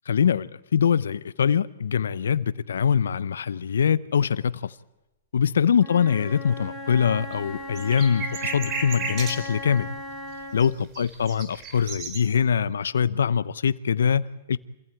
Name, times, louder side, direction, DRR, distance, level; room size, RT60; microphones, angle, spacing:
voice 1, 0.1-4.7 5.3-9.9 10.5-14.6, left 7 dB, 85° left, 0.8 m, -23 dB
Wind instrument woodwind instrument, 5.8-10.7, left 1 dB, ahead, 5.2 m, -37 dB
sound 1, 7.3-9.3 10.6-10.7 10.9-12.2, right 5 dB, 35° right, 4.9 m, -33 dB
27.0 x 15.5 x 9.2 m
hypercardioid pair, 135°, 0 cm